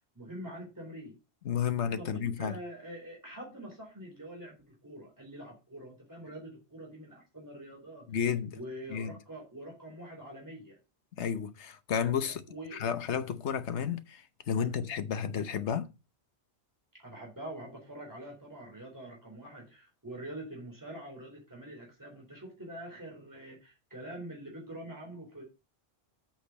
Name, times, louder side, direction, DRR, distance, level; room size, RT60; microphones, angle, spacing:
voice 1, 0.1-1.2 2.0-8.1 8.5-10.8 12.2-12.8 16.9-25.4, right 1 dB, 15° right, 3.9 m, -45 dB
voice 2, 1.4-2.6 8.1-8.6 8.9-9.2 11.1-12.4 12.7-15.9, left 7 dB, 75° left, 1.2 m, -32 dB
8.2 x 6.6 x 5.2 m
omnidirectional pair, 1.2 m